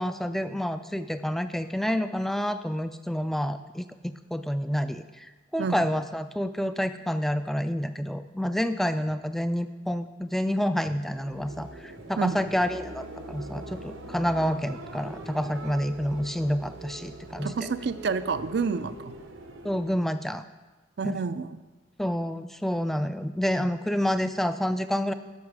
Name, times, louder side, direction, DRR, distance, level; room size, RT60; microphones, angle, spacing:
voice 1, 0.0-17.7 19.6-20.4 21.0-21.2 22.0-25.1, equal, ahead, 10 dB, 0.3 m, -28 dB
sound 1, 10.9-20.3, right 1 dB, 85° right, 0.9 m, -42 dB
voice 2, 17.4-19.1 21.0-21.5, right 5 dB, 60° right, 12 dB, 0.4 m, -29 dB
13.5 x 5.7 x 4.8 m, 1.2 s
head